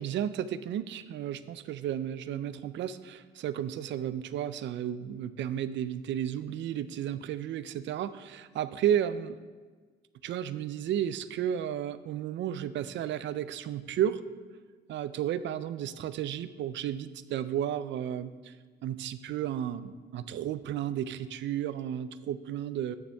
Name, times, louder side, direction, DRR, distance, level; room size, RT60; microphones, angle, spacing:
voice 1, 0.0-9.4 10.2-14.2 14.9-18.5 18.8-23.0, right 10 dB, 65° right, 14 dB, 0.4 m, -33 dB
8.8 x 6.9 x 3.4 m, 1.4 s
cardioid pair, 90°, 20 cm